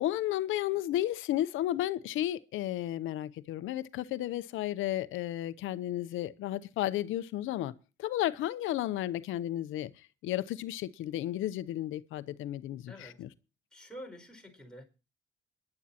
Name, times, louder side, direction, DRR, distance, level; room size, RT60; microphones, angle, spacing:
voice 1, 0.0-7.7 8.0-9.9 10.2-12.9 13.2-13.3, left 13 dB, 85° left, 0.7 m, -33 dB
voice 2, 12.9-13.3 13.7-14.8, equal, 5° left, 5.0 m, -48 dB
23.0 x 11.0 x 2.8 m
cardioid pair, 90°, 20 cm